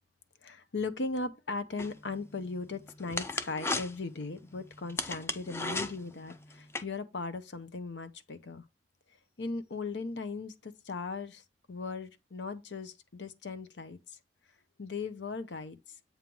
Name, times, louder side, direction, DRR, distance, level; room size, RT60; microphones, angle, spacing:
voice 1, 0.4-8.6 9.4-14.2 14.8-15.8, left 3 dB, 90° left, 0.8 m, -38 dB
sound 1, 1.8-6.8, left 2 dB, 15° left, 0.5 m, -37 dB
8.1 x 3.1 x 5.3 m
head